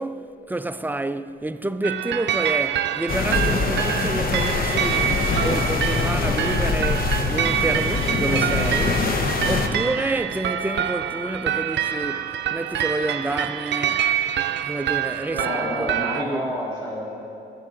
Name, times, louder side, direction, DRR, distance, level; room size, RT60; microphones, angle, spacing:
voice 1, 0.0-9.2 9.4-14.1 14.6-16.5, right 2 dB, 10° right, 0.4 m, -29 dB
sound 1, 1.8-16.2, right 10 dB, 60° right, 0.5 m, -26 dB
sound 2, 3.1-9.7, left 4 dB, 45° left, 0.9 m, -24 dB
voice 2, 15.3-17.1, equal, 15° left, 2.8 m, -29 dB
19.0 x 7.4 x 3.8 m
cardioid pair, 90°, 20 cm